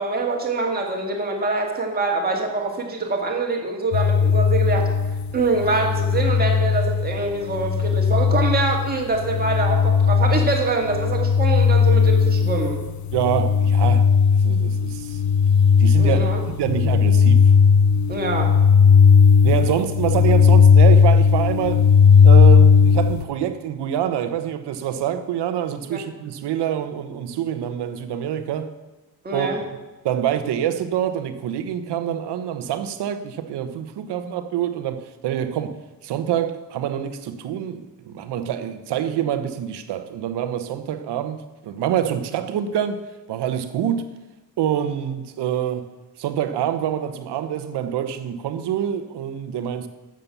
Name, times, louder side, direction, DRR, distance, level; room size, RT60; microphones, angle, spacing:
voice 1, 0.0-4.9 5.3-12.8 16.0-16.4 18.1-18.5 25.9-26.0 29.2-29.6, right 3 dB, 25° right, 2.1 m, -24 dB
sound 1, 3.9-23.2, left 6 dB, 45° left, 0.5 m, -16 dB
voice 2, 13.1-14.1 14.4-15.2 15.8-16.2 16.4-17.5 19.4-21.9 22.2-28.8 29.3-29.5 30.0-35.8 36.0-43.0 43.3-44.0 44.6-45.9 46.2-49.9, right 10 dB, 80° right, 1.2 m, -26 dB
12.5 x 8.0 x 7.2 m
cardioid pair, 175°, 40 cm